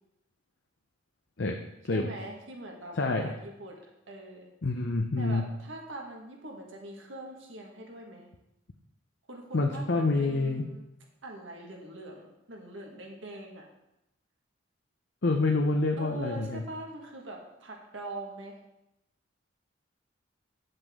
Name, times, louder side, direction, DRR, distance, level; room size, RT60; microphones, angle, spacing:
voice 1, 1.9-4.5 5.2-8.3 9.3-10.8 11.2-13.7 16.0-18.6, right 1 dB, 80° right, 0 dB, 1.6 m, -43 dB
voice 2, 2.9-3.3 4.6-5.5 9.5-10.7 15.2-16.6, left 3 dB, 65° left, 3 dB, 0.7 m, -27 dB
9.6 x 7.7 x 3.7 m, 0.88 s
head